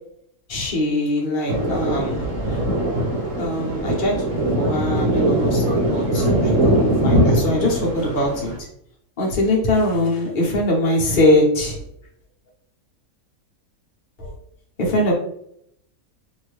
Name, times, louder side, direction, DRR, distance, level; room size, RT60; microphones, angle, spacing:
voice 1, 0.5-2.6 3.4-8.5 9.2-11.8 14.2-14.3 14.8-15.1, left 1 dB, 40° left, -3 dB, 0.9 m, -22 dB
Thunder, 1.5-8.6, right 1 dB, 60° right, 1.3 m, -21 dB
2.8 x 2.7 x 3.2 m, 0.72 s
omnidirectional pair, 1.6 m